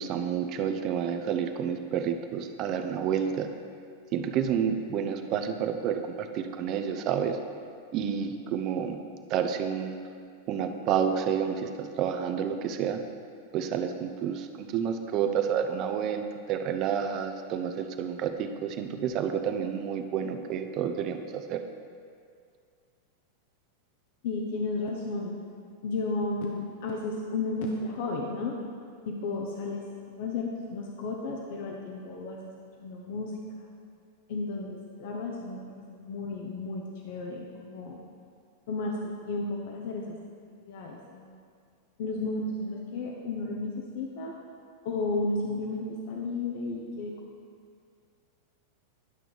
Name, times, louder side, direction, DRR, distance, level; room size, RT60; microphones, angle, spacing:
voice 1, 0.0-3.5 4.1-7.4 7.9-9.0 9.3-10.0 10.5-13.0 13.5-16.2 16.5-21.6, right 8 dB, 45° right, 7 dB, 0.7 m, -29 dB
voice 2, 24.2-25.4 25.8-28.6 29.1-29.8 30.2-32.5 32.8-33.7 34.3-38.0 38.7-40.1 40.5-41.4 42.0-44.3 44.8-47.1, left 3 dB, 65° left, 0 dB, 0.9 m, -33 dB
11.0 x 6.0 x 3.5 m, 2.2 s
hypercardioid pair, 110°, 0 cm